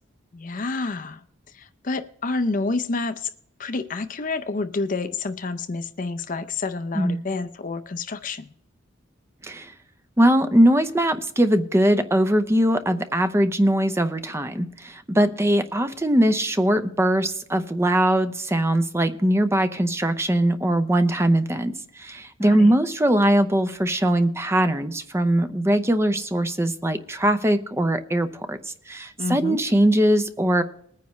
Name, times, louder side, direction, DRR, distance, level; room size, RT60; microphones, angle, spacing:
voice 1, 0.3-1.2 1.5-3.3 3.6-8.5 22.4-22.7 29.2-29.6, left 3 dB, 40° left, 0.6 m, -29 dB
voice 2, 9.4-9.7 10.2-30.6, right 1 dB, 15° right, 0.6 m, -21 dB
20.5 x 9.5 x 3.1 m
head